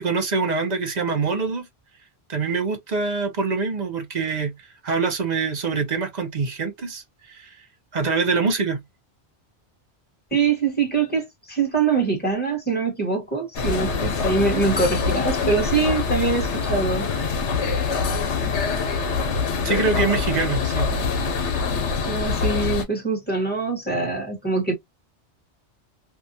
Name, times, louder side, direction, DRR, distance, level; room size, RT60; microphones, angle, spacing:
voice 1, 0.0-1.7 2.3-7.6 7.9-8.8 19.6-20.9, right 4 dB, 45° right, 0.7 m, -25 dB
voice 2, 10.3-17.1 22.1-24.7, right 4 dB, 10° left, 1.3 m, -23 dB
sound 1, 13.5-22.8, left 5 dB, 85° left, 1.1 m, -24 dB
2.7 x 2.3 x 2.6 m
omnidirectional pair, 1.2 m